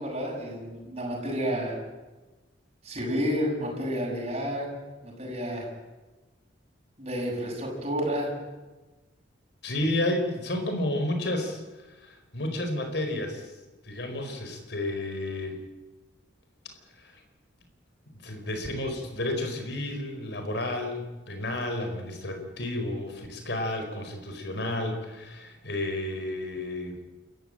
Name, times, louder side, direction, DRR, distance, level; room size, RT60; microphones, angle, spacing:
voice 1, 0.0-1.8 2.8-4.7 5.0-5.7 7.0-8.3, equal, 30° right, -3 dB, 7.5 m, -30 dB
voice 2, 9.6-11.6 11.9-13.5 13.8-15.6 17.0-17.1 18.2-27.0, left 1 dB, 60° left, 5 dB, 4.7 m, -31 dB
28.5 x 15.0 x 9.0 m, 1.2 s
head